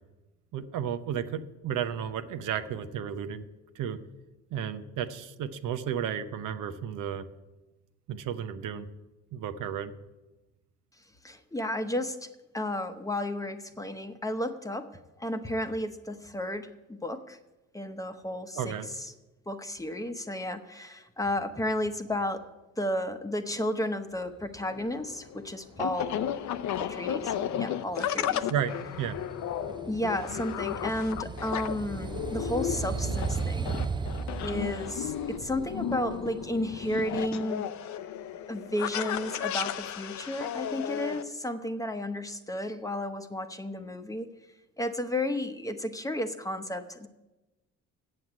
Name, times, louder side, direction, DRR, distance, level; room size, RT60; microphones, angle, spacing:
voice 1, 0.5-3.5 3.7-4.0 4.5-7.3 8.1-8.9 9.3-9.9 18.5-18.9 28.5-29.2, right 8 dB, 85° right, 9 dB, 0.8 m, -33 dB
voice 2, 11.2-12.3 12.5-17.4 17.7-18.7 19.5-22.4 22.8-26.3 26.8-28.5 29.9-33.7 34.4-37.7 38.5-44.3 44.8-47.1, left 1 dB, 10° left, 8 dB, 0.9 m, -33 dB
sound 1, 24.6-41.2, left 10 dB, 70° left, 0.6 m, -34 dB
sound 2, 26.0-37.4, right 5 dB, 15° right, 0.4 m, -37 dB
7.8 x 7.7 x 8.7 m, 1.1 s
cardioid pair, 90°, 30 cm